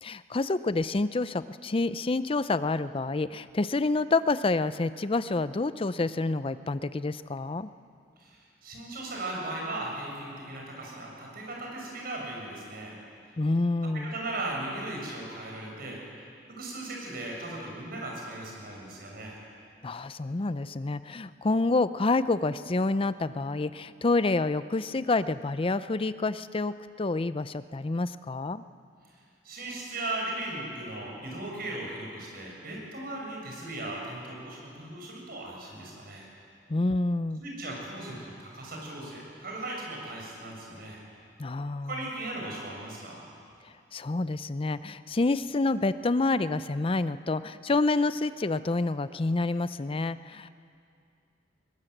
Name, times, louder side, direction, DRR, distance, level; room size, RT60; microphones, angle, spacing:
voice 1, 0.0-7.7 13.4-14.1 19.8-28.6 36.7-37.4 41.4-41.9 43.9-50.5, left 3 dB, 30° left, 14 dB, 0.5 m, -28 dB
voice 2, 8.2-13.0 13.2-13.3 13.9-19.4 29.4-36.3 37.4-41.0 41.9-43.2, right 2 dB, 55° right, -2 dB, 6.4 m, -37 dB
21.5 x 19.0 x 7.9 m, 2.4 s
head